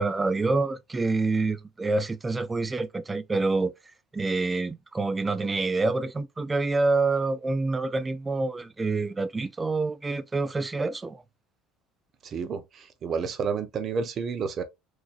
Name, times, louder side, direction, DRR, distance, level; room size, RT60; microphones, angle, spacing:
voice 1, 0.0-3.7 4.1-11.2, right 3 dB, 20° right, 0.5 m, -27 dB
voice 2, 12.2-14.6, right 5 dB, 45° right, 0.8 m, -30 dB
3.7 x 3.1 x 2.4 m
supercardioid pair, 90°, 0 cm